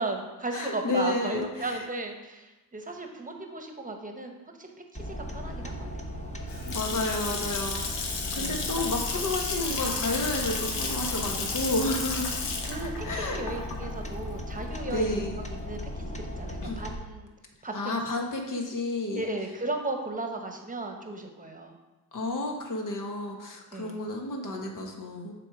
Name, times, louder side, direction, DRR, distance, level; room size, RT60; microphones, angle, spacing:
voice 1, 0.0-4.7 5.0-6.1 8.4-8.7 12.6-17.3 17.6-17.8 19.1-21.8 23.7-24.0, right 2 dB, 20° right, 4 dB, 1.2 m, -35 dB
voice 2, 0.5-1.8 6.7-12.3 13.0-13.4 14.8-15.4 16.6-16.8 17.7-19.3 22.1-25.3, left 2 dB, 45° left, 2 dB, 1.4 m, -31 dB
sound 1, 4.9-17.0, equal, 15° left, 1.1 m, -37 dB
Water tap faucet / Sink (filling or washing) / Splash splatter, 6.3-15.1, left 4 dB, 70° left, 1.1 m, -33 dB
6.6 x 3.6 x 4.9 m, 1.1 s
hypercardioid pair, 45°, 44 cm